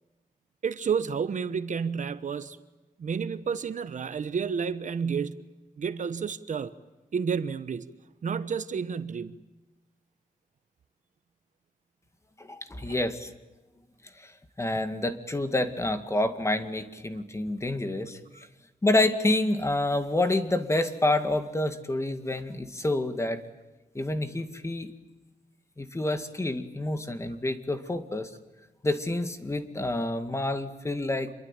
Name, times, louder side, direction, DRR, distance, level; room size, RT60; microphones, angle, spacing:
voice 1, 0.6-2.6 3.0-5.4 5.8-6.7 7.1-7.9 8.2-9.4 12.9-13.0 18.3-18.5, right 6 dB, 60° right, 13 dB, 1.2 m, -30 dB
voice 2, 12.4-13.3 14.2-14.3 14.6-18.2 18.8-23.4 23.9-24.9 25.8-28.3 28.8-31.3, left 2 dB, 20° left, 9 dB, 2.1 m, -28 dB
27.0 x 22.5 x 9.1 m, 1.1 s
wide cardioid pair, 130°, 14 cm